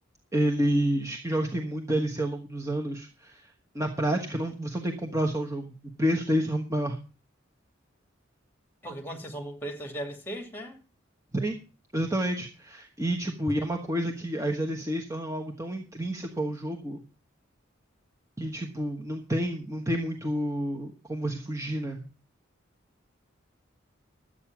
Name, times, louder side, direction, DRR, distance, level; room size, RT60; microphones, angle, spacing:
voice 1, 0.3-7.0 11.3-11.6 11.9-17.0 18.4-22.1, right 1 dB, 15° right, 1.2 m, -29 dB
voice 2, 8.8-10.8, right 1 dB, 10° left, 2.5 m, -37 dB
12.0 x 8.8 x 6.0 m
head